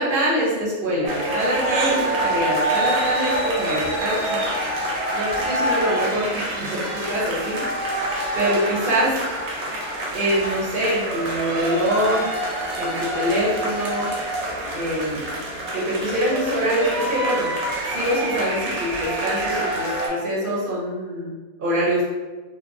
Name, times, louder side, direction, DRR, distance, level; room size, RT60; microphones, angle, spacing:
voice 1, 0.0-4.4 5.1-7.6 8.3-9.2 10.1-12.3 12.8-14.1 14.7-15.2 15.7-17.5 17.9-22.0, right 1 dB, 55° right, -6 dB, 0.6 m, -24 dB
sound 1, 1.1-20.1, right 1 dB, 90° right, 1.1 m, -26 dB
2.7 x 2.0 x 2.5 m, 1.2 s
omnidirectional pair, 1.5 m